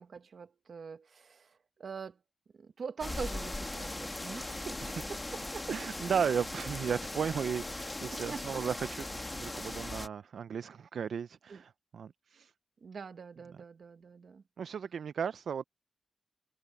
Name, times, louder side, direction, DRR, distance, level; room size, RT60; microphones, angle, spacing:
voice 1, 0.0-2.2 2.6-5.7 8.1-8.6 11.5-11.6 12.8-14.4, right 5 dB, 65° right, 1.3 m, -44 dB
sound 1, 3.0-10.1, left 2 dB, 20° left, 1.4 m, -39 dB
voice 2, 5.7-12.5 14.6-15.6, right 7 dB, 85° right, 0.4 m, -35 dB
cardioid pair, 85°, 0 cm